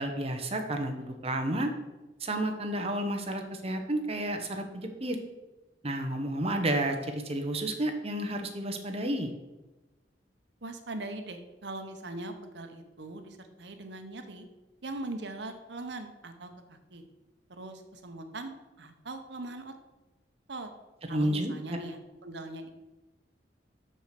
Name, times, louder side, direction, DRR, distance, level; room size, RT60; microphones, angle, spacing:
voice 1, 0.0-1.7 2.2-5.2 5.8-9.3 21.1-21.8, right 1 dB, 35° right, 4 dB, 1.1 m, -31 dB
voice 2, 10.6-14.5 14.8-17.0 17.6-19.7 20.5-20.7 21.1-22.7, right 2 dB, 70° right, 7 dB, 1.0 m, -41 dB
6.6 x 6.6 x 5.9 m, 1.1 s
head